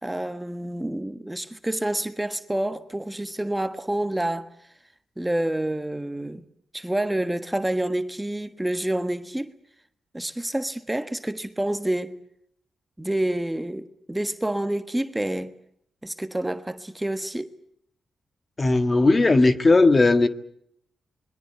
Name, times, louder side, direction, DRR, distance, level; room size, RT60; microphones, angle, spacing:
voice 1, 0.0-4.5 5.2-6.4 6.7-9.5 10.1-12.2 13.0-15.5 16.0-17.5, right 1 dB, 10° right, 1.4 m, -28 dB
voice 2, 18.6-20.3, left 2 dB, 35° left, 1.7 m, -17 dB
26.5 x 22.0 x 7.8 m
cardioid pair, 70°, 0 cm